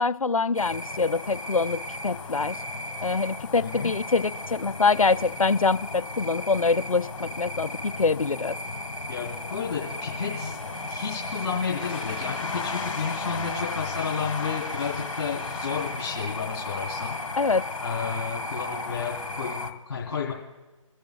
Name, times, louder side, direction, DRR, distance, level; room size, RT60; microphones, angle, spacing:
voice 1, 0.0-2.6 3.0-8.6 17.4-17.7, left 4 dB, 90° left, 15 dB, 0.5 m, -25 dB
sound 1, 0.5-19.7, left 2 dB, 70° left, 1.6 m, -34 dB
voice 2, 3.6-3.9 9.1-10.6 10.9-17.2 17.8-20.3, left 6 dB, 50° left, -4 dB, 3.2 m, -32 dB
sound 2, 11.8-13.0 14.7-15.5, left 4 dB, 20° left, 4.6 m, -43 dB
30.0 x 10.5 x 2.3 m, 1.1 s
figure-of-eight pair, 145°, 17 cm